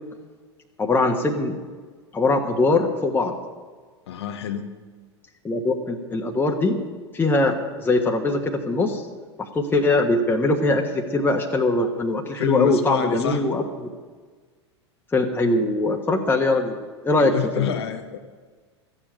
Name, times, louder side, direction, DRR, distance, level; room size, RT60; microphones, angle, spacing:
voice 1, 0.8-1.5 2.1-3.3 5.4-6.8 7.1-9.0 9.4-10.8 11.1-13.9 15.1-16.8 17.0-17.7, left 2 dB, 15° left, 2 dB, 1.3 m, -22 dB
voice 2, 4.1-4.7 12.3-13.4 17.2-18.2, left 9 dB, 65° left, 6 dB, 0.9 m, -27 dB
14.0 x 7.3 x 9.1 m, 1.4 s
figure-of-eight pair, 90°, 15 cm